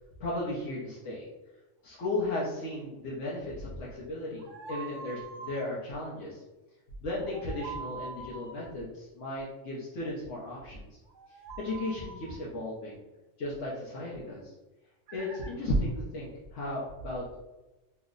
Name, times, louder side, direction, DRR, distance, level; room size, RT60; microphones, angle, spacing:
voice 1, 0.2-1.3 1.8-6.4 7.0-10.9 11.6-13.0 13.4-14.5 15.1-17.4, left 1 dB, 75° left, -6 dB, 1.0 m, -35 dB
sound 1, 4.4-5.7 7.2-8.6 11.1-12.4 15.1-15.5, right 5 dB, 75° right, 1.0 m, -43 dB
3.1 x 2.0 x 3.6 m, 1.1 s
omnidirectional pair, 1.3 m